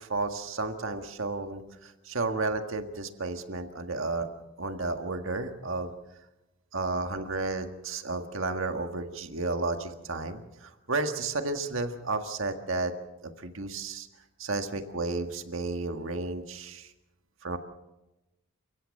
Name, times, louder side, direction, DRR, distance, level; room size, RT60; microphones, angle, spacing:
voice 1, 0.0-4.3 4.6-5.9 6.7-12.9 13.2-14.1 14.4-16.9 17.4-17.6, right 3 dB, 65° right, 7 dB, 1.7 m, -32 dB
29.5 x 16.0 x 6.6 m, 1.0 s
head